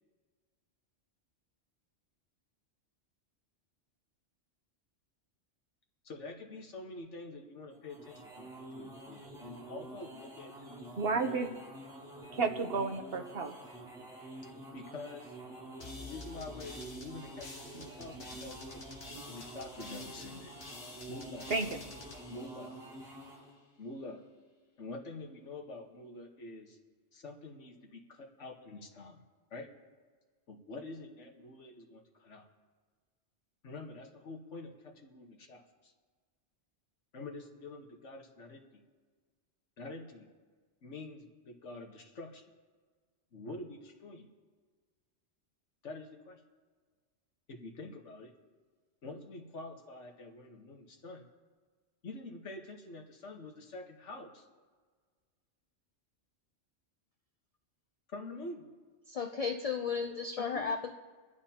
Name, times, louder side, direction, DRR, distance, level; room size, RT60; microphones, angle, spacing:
voice 1, 6.0-11.0 14.7-15.3 16.0-18.8 19.3-20.5 21.1-21.5 22.3-22.8 23.8-24.2 24.8-26.8 27.1-29.2 29.5-29.7 30.5-32.5 33.6-35.9 37.1-38.8 39.8-40.3 40.8-42.4 43.3-44.3 45.8-46.4 47.5-48.3 49.0-51.2 52.0-54.4 58.1-58.7 60.5-60.7, left 2 dB, 80° left, 2 dB, 1.7 m, -46 dB
sound 1, 7.7-23.5, right 2 dB, 5° right, 5.4 m, -48 dB
voice 2, 11.0-11.5 12.3-13.5 17.8-17.9 19.1-19.2 21.5-21.7, right 4 dB, 55° right, 6 dB, 1.1 m, -32 dB
sound 2, 15.8-23.3, left 3 dB, 60° left, 1.5 m, -49 dB
voice 3, 59.1-60.9, left 5 dB, 45° left, 5 dB, 0.5 m, -34 dB
26.0 x 11.5 x 2.9 m, 1.5 s
omnidirectional pair, 1.2 m